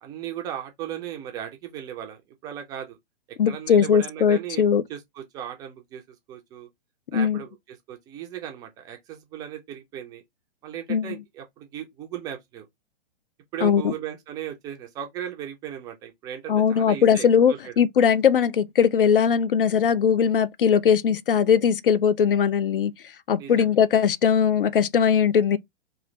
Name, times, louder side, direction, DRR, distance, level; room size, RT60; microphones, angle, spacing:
voice 1, 0.0-3.0 3.3-4.6 4.9-6.7 7.1-10.2 10.6-12.7 13.5-17.7 23.4-23.7, right 10 dB, 15° right, 0.4 m, -37 dB
voice 2, 3.4-4.8 7.1-7.4 10.9-11.1 13.6-13.9 16.5-22.9 23.3-25.6, left 7 dB, 65° left, 0.5 m, -20 dB
3.1 x 2.4 x 3.8 m
figure-of-eight pair, 110°, 29 cm